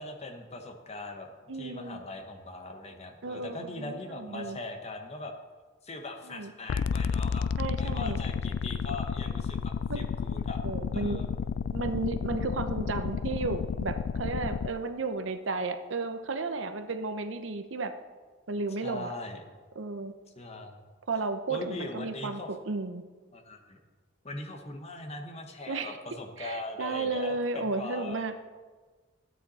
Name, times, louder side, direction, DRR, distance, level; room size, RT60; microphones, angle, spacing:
voice 1, 0.0-5.3 5.8-7.5 7.8-10.6 10.9-11.5 18.8-19.4 20.3-20.8 21.5-22.5 23.3-23.8 24.2-28.3, left 2 dB, 30° left, 4 dB, 1.2 m, -40 dB
voice 2, 1.5-2.0 3.2-4.6 6.3-6.5 7.6-8.2 9.9-10.0 10.6-11.2 11.7-17.9 18.5-19.1 19.8-20.1 21.1-23.0 25.7-26.0 26.4-28.3, right 3 dB, 70° right, 9 dB, 0.8 m, -33 dB
sound 1, 6.7-14.7, left 6 dB, 65° left, 0.3 m, -31 dB
13.0 x 9.2 x 4.2 m, 1.4 s
head